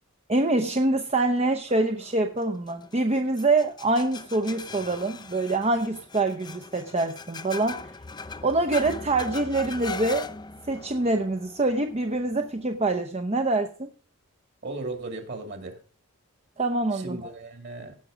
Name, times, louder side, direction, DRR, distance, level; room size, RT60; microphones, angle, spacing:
voice 1, 0.3-7.8 8.4-10.3 10.7-13.9 16.6-17.3, right 2 dB, 30° right, 6 dB, 0.7 m, -25 dB
sound 1, 1.7-13.0, left 4 dB, 20° left, 0.5 m, -41 dB
voice 2, 14.6-15.8 16.9-17.9, right 2 dB, 50° right, 4 dB, 2.5 m, -36 dB
16.5 x 6.1 x 5.0 m, 0.40 s
head